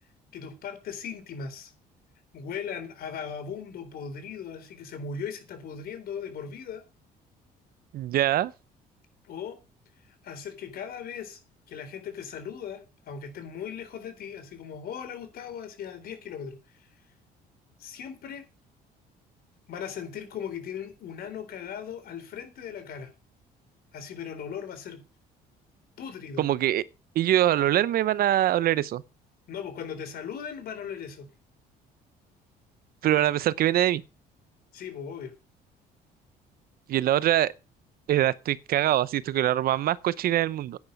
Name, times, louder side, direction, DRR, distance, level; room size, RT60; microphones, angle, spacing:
voice 1, 0.3-1.7 2.3-6.8 9.3-9.6 10.0-11.4 11.7-16.8 17.8-18.5 19.7-23.1 23.9-25.0 26.0-26.4 29.5-31.3 34.7-35.3, left 7 dB, 65° left, 3.9 m, -38 dB
voice 2, 7.9-8.5 26.4-26.8 27.2-29.0 33.0-34.0 36.9-37.5 38.1-40.8, right 13 dB, 60° right, 0.7 m, -23 dB
10.5 x 9.5 x 5.3 m
cardioid pair, 110°, 17 cm